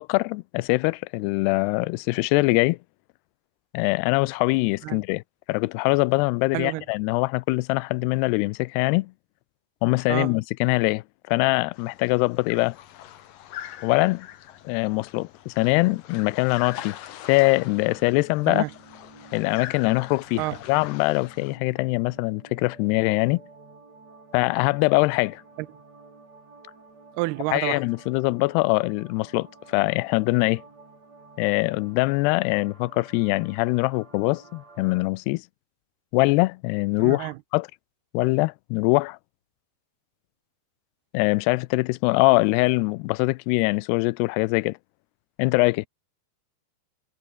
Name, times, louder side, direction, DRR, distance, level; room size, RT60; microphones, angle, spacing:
voice 1, 0.0-2.8 3.7-5.2 5.5-9.1 9.8-12.8 13.8-14.3 14.7-17.0 17.3-18.7 19.3-23.4 24.3-25.4 27.5-30.6 31.4-35.4 36.1-37.7 38.1-39.2 41.1-44.8 45.4-45.9, left 24 dB, 85° left, 2.6 m, -23 dB
voice 2, 6.5-6.8 10.1-10.3 18.5-18.7 20.4-20.6 25.6-25.7 27.1-27.8 37.0-37.4, right 21 dB, 80° right, 2.6 m, -29 dB
sound 1, 11.7-21.6, left 12 dB, 65° left, 2.9 m, -42 dB
sound 2, 17.4-35.1, right 3 dB, 40° right, 7.4 m, -51 dB
omnidirectional pair, 4.7 m